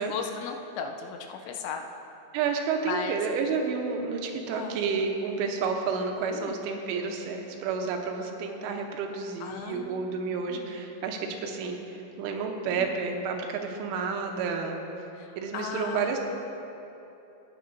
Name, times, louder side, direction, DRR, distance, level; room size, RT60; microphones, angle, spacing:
voice 1, 0.0-1.8 2.8-3.2 4.5-4.8 6.3-6.5 9.4-10.8 12.7-12.9 15.2-16.1, left 6 dB, 80° left, 4 dB, 2.9 m, -37 dB
voice 2, 2.3-15.1 15.4-16.2, right 5 dB, 90° right, 3 dB, 3.3 m, -30 dB
14.5 x 9.3 x 2.6 m, 2.9 s
omnidirectional pair, 5.5 m